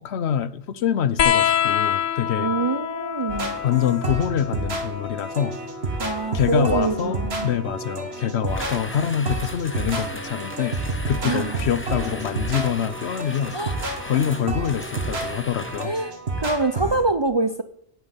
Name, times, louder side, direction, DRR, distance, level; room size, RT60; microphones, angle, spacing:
voice 1, 0.0-2.5 3.6-5.5 6.3-10.8 11.1-15.9, left 8 dB, 80° left, 1.0 m, -25 dB
sound 1, 1.2-8.3 9.6-10.5 11.8-11.9, left 9 dB, 55° left, 0.8 m, -27 dB
voice 2, 2.4-3.6 6.0-7.6 11.2-11.6 13.5-13.8 15.8-17.6, right 3 dB, 35° right, 0.5 m, -25 dB
sound 2, 3.3-17.0, right 2 dB, 70° right, 2.1 m, -30 dB
sound 3, 8.5-16.0, left 1 dB, 10° left, 1.0 m, -38 dB
9.5 x 9.4 x 8.1 m
omnidirectional pair, 1.1 m